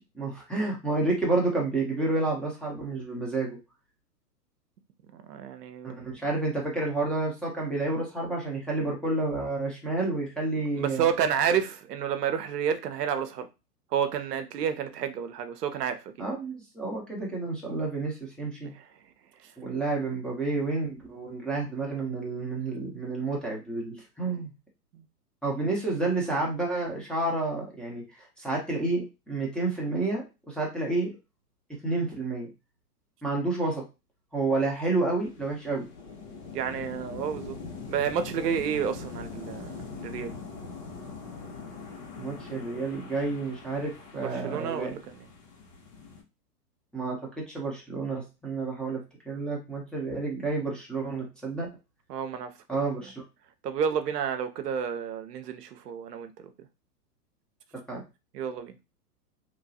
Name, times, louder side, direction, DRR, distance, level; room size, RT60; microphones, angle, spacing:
voice 1, 0.0-3.6 5.8-11.0 16.2-18.7 19.6-24.5 25.4-28.0 28.4-31.1 31.8-32.5 33.2-33.8 34.3-35.9 42.2-44.9 46.9-49.0 49.3-51.7 52.7-53.1 57.9-58.0, right 2 dB, ahead, 0.6 m, -30 dB
voice 2, 5.3-5.9 10.8-13.5 13.9-16.1 18.6-18.8 24.9-25.0 36.5-37.6 37.9-40.3 44.1-45.3 52.1-52.5 53.0-53.1 53.6-56.5 58.3-58.7, right 8 dB, 75° right, 0.6 m, -30 dB
sound 1, 35.2-46.2, left 4 dB, 75° left, 1.4 m, -42 dB
2.9 x 2.2 x 2.7 m
hypercardioid pair, 115°, 48 cm